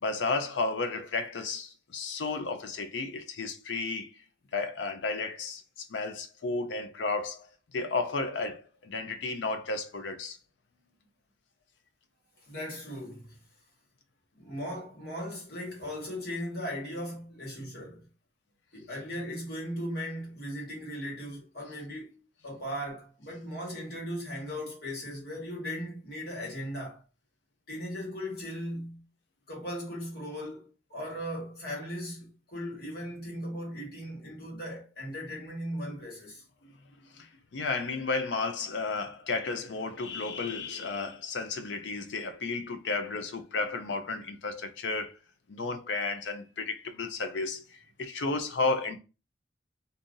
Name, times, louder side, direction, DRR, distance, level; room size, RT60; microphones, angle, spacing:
voice 1, 0.0-4.2 4.5-10.4 37.1-45.2 45.5-49.0, left 3 dB, 80° left, 0.5 m, -33 dB
voice 2, 12.4-13.4 14.3-18.1 18.7-27.0 27.7-29.0 29.5-36.4, equal, 55° left, 1.6 m, -38 dB
2.7 x 2.6 x 3.7 m
head